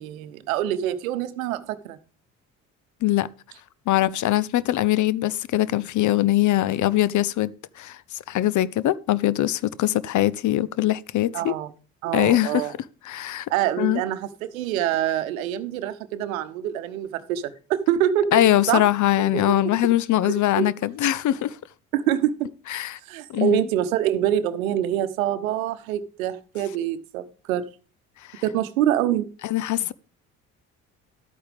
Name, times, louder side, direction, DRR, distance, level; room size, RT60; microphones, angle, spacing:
voice 1, 0.0-2.0 11.3-11.7 12.0-12.7 13.5-18.4 18.7-18.8 19.3-19.4 20.6-20.7 21.9-22.5 23.1-27.7 28.4-29.3, right 11 dB, 80° right, 0.9 m, -25 dB
voice 2, 3.9-11.5 12.1-12.7 13.0-13.5 13.8-14.0 18.3-21.6 22.7-23.0 23.3-23.6 28.3-28.4 29.4-29.9, left 14 dB, 45° left, 0.6 m, -22 dB
12.0 x 8.7 x 3.4 m
hypercardioid pair, 55°, 40 cm